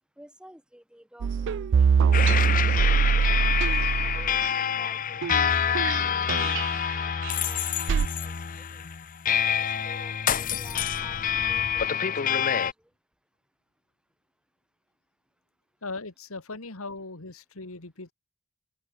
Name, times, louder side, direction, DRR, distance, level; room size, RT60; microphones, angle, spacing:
voice 1, 0.2-3.4 4.0-5.8 6.0-7.1 7.4-8.8 9.5-12.9, equal, 5° right, 2.4 m, -52 dB
sound 1, 1.2-4.5 5.2-5.5 5.8-6.0 6.3-6.7 7.2-7.3 7.9-8.1, right 6 dB, 55° right, 0.3 m, -23 dB
sound 2, 2.1-12.7, left 8 dB, 40° left, 0.6 m, -27 dB
voice 2, 15.8-18.1, left 3 dB, 70° left, 2.1 m, -38 dB
open air
head